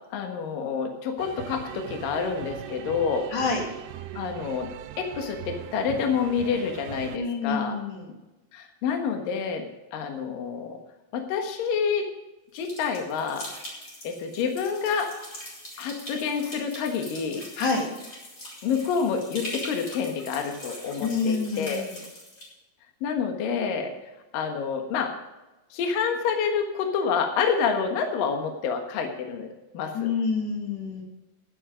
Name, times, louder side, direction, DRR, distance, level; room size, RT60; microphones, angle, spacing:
voice 1, 0.1-3.3 4.1-4.7 5.0-7.8 8.5-9.6 9.9-10.8 11.1-12.1 12.5-13.5 14.0-15.1 15.8-17.4 18.6-21.9 23.0-23.9 24.3-25.1 25.7-29.5 29.7-30.1, left 6 dB, 65° left, 4 dB, 2.8 m, -28 dB
sound 1, 1.2-7.2, right 10 dB, 85° right, 2.9 m, -40 dB
voice 2, 3.3-3.6 7.1-8.1 17.6-17.9 21.0-21.9 29.9-31.0, left 4 dB, 80° left, 1 dB, 4.5 m, -27 dB
sound 2, 12.6-22.5, left 1 dB, 25° left, 4.0 m, -42 dB
12.0 x 10.0 x 5.0 m, 1.1 s
omnidirectional pair, 4.9 m